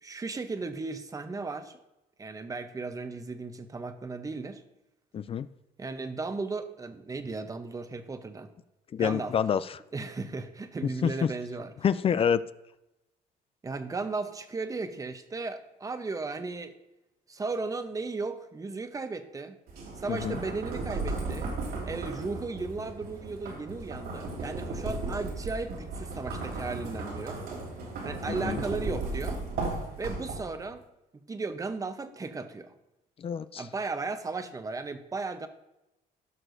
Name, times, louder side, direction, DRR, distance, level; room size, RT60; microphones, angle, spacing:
voice 1, 0.0-1.8 2.2-4.6 5.8-8.5 9.0-9.3 9.9-11.7 13.6-16.7 17.3-19.6 20.0-21.5 21.9-27.4 28.0-29.4 30.0-30.8 31.3-32.7 33.6-35.5, right 3 dB, 20° right, 9 dB, 0.8 m, -35 dB
voice 2, 5.1-5.5 8.9-9.6 11.0-11.1 11.8-12.4 20.1-20.4 28.4-28.6 33.2-33.6, left 8 dB, 35° left, 15 dB, 0.4 m, -27 dB
sound 1, 19.7-30.7, right 3 dB, 80° right, 3.5 m, -35 dB
16.0 x 6.2 x 2.6 m, 0.92 s
cardioid pair, 110°, 17 cm